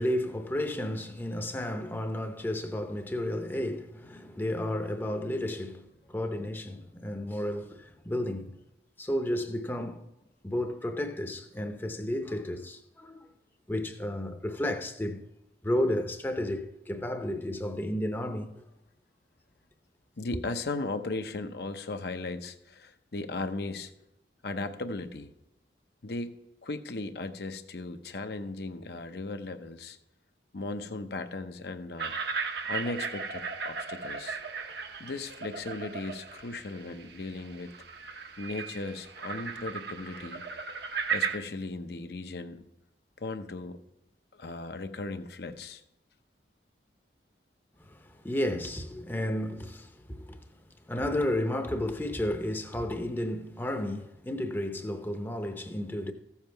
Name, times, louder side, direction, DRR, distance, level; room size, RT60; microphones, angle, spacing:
voice 1, 0.0-8.6 9.0-10.0 10.4-13.3 13.7-15.2 15.6-18.6 47.8-50.4 50.9-56.1, left 1 dB, 10° left, 0.7 m, -32 dB
voice 2, 20.2-23.9 24.4-25.3 26.0-26.3 26.6-30.0 30.5-32.1 32.7-34.4 35.0-37.7 38.4-40.4 41.1-42.6 43.2-43.8 44.3-45.8, left 2 dB, 65° left, 0.7 m, -37 dB
sound 1, 32.0-41.4, right 5 dB, 75° right, 0.9 m, -36 dB
14.5 x 7.2 x 4.6 m
head